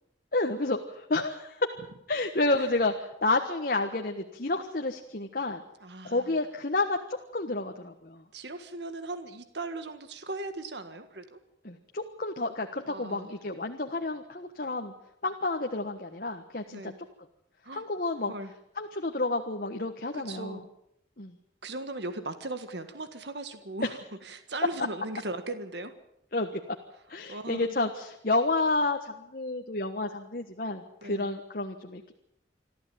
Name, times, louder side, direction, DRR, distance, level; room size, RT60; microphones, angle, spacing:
voice 1, 0.3-1.7 2.1-5.6 6.0-8.2 11.6-14.9 15.2-16.9 17.7-18.3 18.8-20.6 21.2-21.3 26.3-26.6 27.1-32.1, left 2 dB, 50° left, 4 dB, 1.4 m, -30 dB
voice 2, 5.8-6.2 8.3-11.4 12.9-13.3 16.7-16.9 17.6-17.8 18.3-18.5 20.1-20.6 21.6-25.9 27.3-27.8 31.0-31.3, right 2 dB, 65° right, 9 dB, 1.7 m, -38 dB
26.5 x 13.5 x 9.2 m, 0.79 s
head